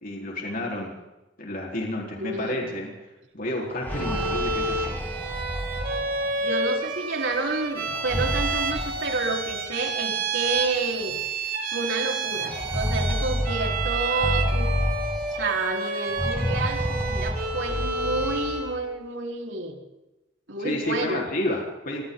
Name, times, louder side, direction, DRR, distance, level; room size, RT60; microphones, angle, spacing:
voice 1, 0.0-0.9 1.4-2.9 3.3-5.0 20.6-22.0, left 1 dB, 50° left, -1 dB, 4.4 m, -30 dB
voice 2, 2.2-2.7 6.0-11.2 11.7-14.7 15.3-19.8 20.5-21.2, right 3 dB, 85° right, 1 dB, 4.6 m, -30 dB
sound 1, 3.6-6.5 7.9-9.6 10.6-10.7 11.0-11.1 12.4-15.5 16.1-18.7, equal, 10° left, 1.8 m, -30 dB
Bowed string instrument, 3.9-18.8, right 3 dB, 55° right, 5.1 m, -29 dB
27.5 x 23.5 x 4.0 m, 1.0 s
head